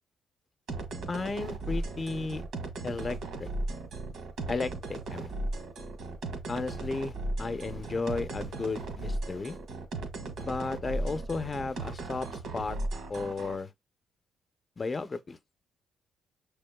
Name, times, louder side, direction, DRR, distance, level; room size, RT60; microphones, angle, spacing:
sound 1, 0.7-13.6, right 2 dB, 75° right, 1.5 m, -36 dB
voice 1, 1.1-2.4 2.8-3.5 4.5-5.3 6.5-9.6 10.4-12.8 13.1-13.7 14.8-15.4, left 3 dB, 30° left, 0.7 m, -34 dB
6.3 x 3.5 x 2.3 m
cardioid pair, 90°, 0 cm